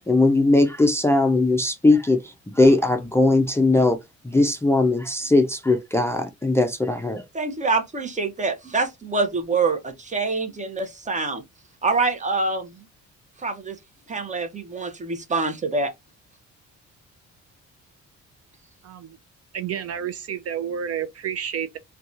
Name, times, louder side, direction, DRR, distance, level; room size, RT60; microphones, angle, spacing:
voice 1, 0.0-4.0 4.2-7.2, left 2 dB, 10° left, 0.4 m, -19 dB
voice 2, 7.3-11.4 11.8-12.7 13.4-13.8 14.1-15.9, right 3 dB, 25° right, 0.7 m, -25 dB
voice 3, 18.8-19.2 19.5-21.8, right 8 dB, 55° right, 0.4 m, -30 dB
2.6 x 2.2 x 2.5 m
cardioid pair, 90°, 30 cm